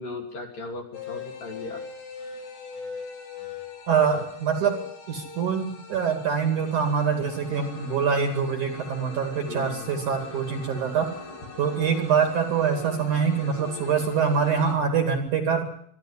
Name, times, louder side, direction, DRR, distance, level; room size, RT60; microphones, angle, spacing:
voice 1, 0.0-1.8 9.5-9.9, left 3 dB, 50° left, 2 dB, 4.0 m, -37 dB
sound 1, 0.9-14.7, left 4 dB, 85° left, 6.8 m, -40 dB
voice 2, 3.9-4.7 5.1-11.1 11.6-15.6, right 6 dB, 50° right, 6 dB, 3.3 m, -24 dB
24.0 x 13.0 x 9.8 m, 0.63 s
omnidirectional pair, 5.4 m